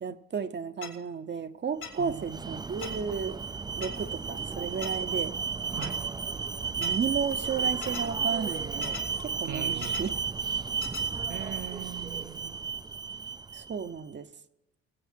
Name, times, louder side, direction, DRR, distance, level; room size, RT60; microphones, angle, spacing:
voice 1, 0.0-3.4 3.8-5.4 6.8-10.1 13.5-14.3, right 6 dB, 35° right, 0.8 m, -33 dB
sound 1, 0.8-0.9 1.8-1.9 2.8-2.9 3.8-3.9 4.8-4.9 5.8-5.9 6.8-6.9 7.8-8.0 8.8-9.0 9.8-10.0 10.8-11.0, left 7 dB, 75° left, 3.2 m, -38 dB
Alarm, 1.9-13.9, right 5 dB, 15° right, 0.4 m, -33 dB
voice 2, 2.0-2.4 5.8-6.0 9.4-10.0 11.3-12.6, right 13 dB, 90° right, 0.6 m, -40 dB
22.5 x 8.1 x 4.5 m
cardioid pair, 90°, 30 cm